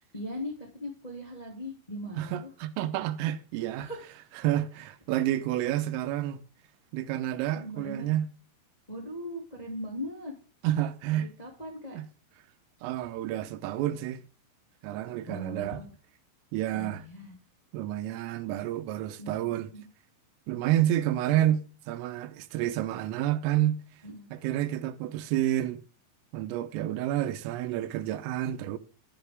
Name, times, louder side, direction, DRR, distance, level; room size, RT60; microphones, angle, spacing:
voice 1, 0.1-2.3 3.8-4.0 7.5-8.1 8.9-10.3 11.1-12.0 15.2-15.9 16.7-17.4 19.2-19.8 24.0-24.3, left 1 dB, 15° left, 1.3 m, -39 dB
voice 2, 2.2-3.9 4.4-6.4 6.9-8.3 10.6-11.3 11.9-12.1 12.8-14.2 14.8-15.8 16.5-17.0 17.7-19.7 20.5-23.8 24.3-25.8 26.3-28.8, right 13 dB, 90° right, 3.5 m, -29 dB
11.0 x 10.5 x 3.6 m
omnidirectional pair, 5.8 m